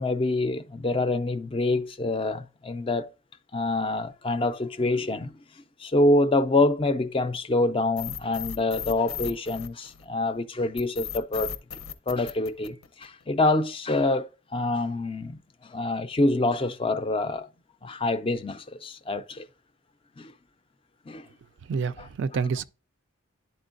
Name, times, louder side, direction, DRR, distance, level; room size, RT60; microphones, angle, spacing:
voice 1, 0.0-3.1 3.5-5.3 5.8-11.6 12.1-17.5 17.8-19.5 20.2-20.3 21.1-21.3 22.0-22.1, left 2 dB, 25° left, 0.4 m, -26 dB
sound 1, 8.0-10.2 10.8-13.2, left 9 dB, 90° left, 0.7 m, -36 dB
voice 2, 21.7-22.6, right 5 dB, 55° right, 0.3 m, -28 dB
11.0 x 4.4 x 2.5 m
head